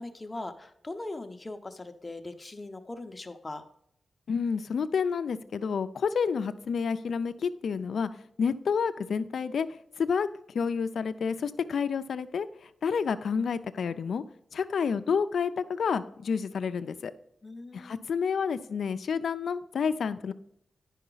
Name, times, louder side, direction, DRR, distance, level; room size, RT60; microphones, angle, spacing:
voice 1, 0.0-3.6 17.4-18.0, left 2 dB, 25° left, 7 dB, 0.7 m, -40 dB
voice 2, 4.3-8.1 8.4-9.7 10.0-10.3 10.5-12.5 12.8-14.2 14.5-17.1 17.7-20.3, left 6 dB, 80° left, 12 dB, 0.4 m, -29 dB
10.0 x 5.7 x 3.9 m, 0.72 s
wide cardioid pair, 90°, 0 cm